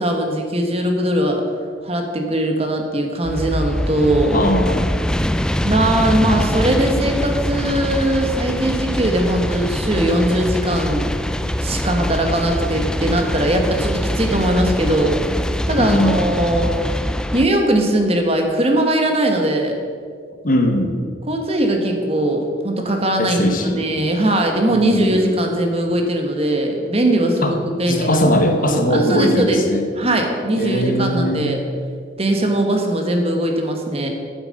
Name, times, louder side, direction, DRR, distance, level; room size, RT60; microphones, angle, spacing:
voice 1, 0.0-1.4 1.8-4.4 5.6-11.1 11.6-15.2 15.7-16.7 17.3-19.8 21.3-28.3 28.6-29.6 30.0-31.6 32.2-34.1, right 1 dB, 30° right, 3 dB, 1.4 m, -20 dB
sound 1, 3.2-17.5, equal, 5° left, 0.3 m, -23 dB
voice 2, 4.3-5.0 15.8-16.3 20.4-21.0 23.2-23.9 24.7-25.2 27.4-27.5 27.9-29.9 30.6-31.4, equal, 45° left, 5 dB, 1.2 m, -19 dB
9.2 x 9.1 x 7.8 m, 2.1 s
head